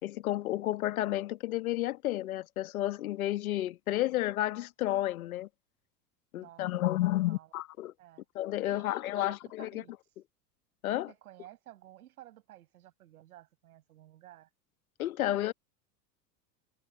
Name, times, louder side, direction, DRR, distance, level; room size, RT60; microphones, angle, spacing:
voice 1, 0.0-5.5 6.3-7.9 8.3-9.8 10.8-11.1 15.0-15.5, left 15 dB, 60° left, 1.3 m, -31 dB
voice 2, 6.4-7.5 8.0-8.2 8.7-9.9 11.1-14.5, right 13 dB, 60° right, 5.3 m, -54 dB
figure-of-eight pair, 85°, 49 cm